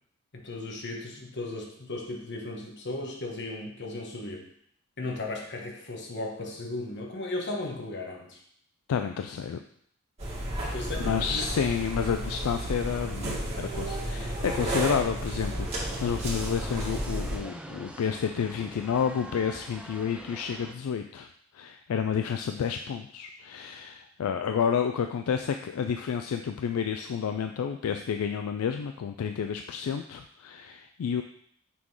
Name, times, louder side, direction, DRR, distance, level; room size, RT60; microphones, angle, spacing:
voice 1, 0.3-4.4 5.0-8.4 10.7-11.5, left 2 dB, 55° left, 1 dB, 1.2 m, -36 dB
voice 2, 8.9-9.6 11.0-21.3 21.5-31.2, left 7 dB, 80° left, 7 dB, 0.3 m, -30 dB
sound 1, 10.2-17.4, right 1 dB, 30° right, 1.8 m, -32 dB
sound 2, 15.6-20.8, right 1 dB, 5° right, 0.4 m, -44 dB
6.0 x 3.7 x 4.7 m, 0.66 s
head